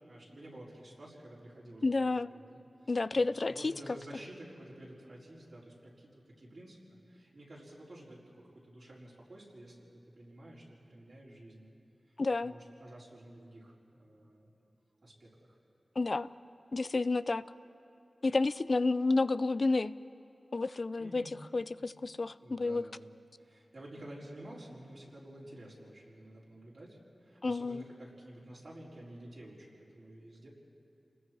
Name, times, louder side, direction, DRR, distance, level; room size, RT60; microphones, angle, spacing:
voice 1, 0.1-9.8 10.1-11.7 12.1-14.5 15.0-15.6 21.0-21.4 22.4-23.1 23.4-30.5, right 1 dB, 65° right, -5 dB, 4.7 m, -51 dB
voice 2, 1.8-2.3 2.9-3.7 12.2-12.5 16.0-16.3 16.7-17.4 18.2-19.9 20.5-21.2 21.5-22.8 27.4-27.8, left 3 dB, 55° left, 15 dB, 0.4 m, -30 dB
29.0 x 20.5 x 4.8 m, 3.0 s
cardioid pair, 50°, 0 cm